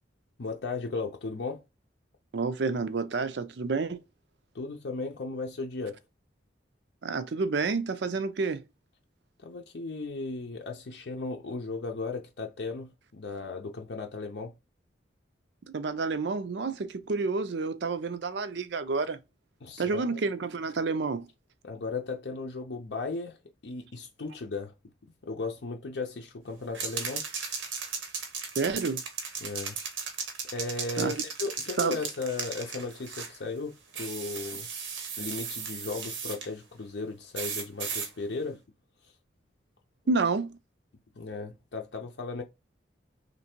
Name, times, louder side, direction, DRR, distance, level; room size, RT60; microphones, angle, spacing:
voice 1, 0.4-1.6 4.5-6.0 9.4-14.5 19.6-20.2 21.6-23.4 23.6-24.7 25.2-27.3 29.4-29.8 30.5-34.7 35.2-38.6 41.2-42.4, left 3 dB, 65° left, 0.6 m, -36 dB
voice 2, 2.3-4.0 7.0-8.6 15.7-19.2 19.8-21.3 28.6-29.0 31.0-31.2 31.8-32.0 40.1-40.6, right 4 dB, 65° right, 0.5 m, -29 dB
sound 1, 26.7-33.4 33.9-36.5 37.3-38.1, right 6 dB, 90° right, 1.0 m, -36 dB
3.3 x 2.6 x 4.4 m
head